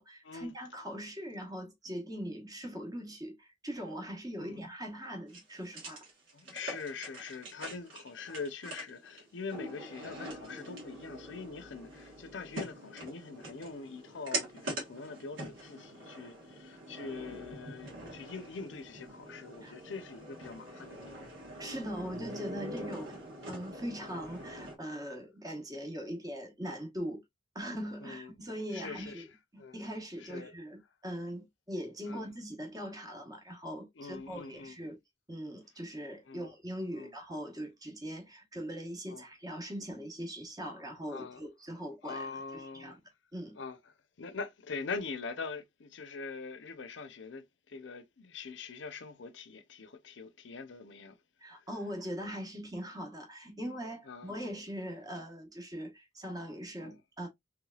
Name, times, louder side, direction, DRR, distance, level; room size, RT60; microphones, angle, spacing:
voice 1, 0.0-6.0 19.6-19.7 21.6-23.2 23.5-27.2 27.5-29.2 29.5-35.0 35.3-42.3 42.5-43.0 43.3-43.6 51.4-57.3, equal, 20° right, 1.0 m, -41 dB
sound 1, 5.3-24.8, right 1 dB, 75° right, 1.6 m, -44 dB
voice 2, 6.3-21.2 22.8-23.0 28.0-28.3 28.7-29.2 29.6-29.8 30.2-30.5 32.1-32.3 34.0-34.8 36.3-36.5 36.9-37.1 39.1-39.2 41.1-41.4 42.0-43.0 43.5-51.2 51.5-51.6 54.1-54.3 56.8-57.0, left 4 dB, 65° left, 0.6 m, -43 dB
3.2 x 3.2 x 2.3 m
head